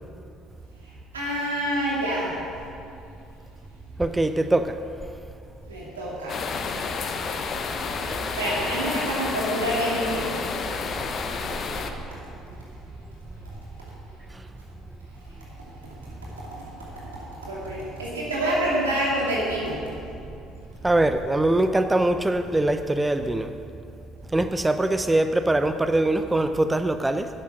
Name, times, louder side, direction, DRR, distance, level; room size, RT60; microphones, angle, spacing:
voice 1, 1.1-2.3 5.7-6.4 8.4-10.5 17.4-19.8, right 1 dB, 90° right, -6 dB, 2.6 m, -27 dB
voice 2, 4.0-4.8 20.8-23.5 24.3-27.3, right 1 dB, 15° right, 9 dB, 0.5 m, -22 dB
sound 1, 6.3-11.9, left 5 dB, 45° left, 0.8 m, -30 dB
9.6 x 7.4 x 6.5 m, 2.6 s
hypercardioid pair, 55°, 0 cm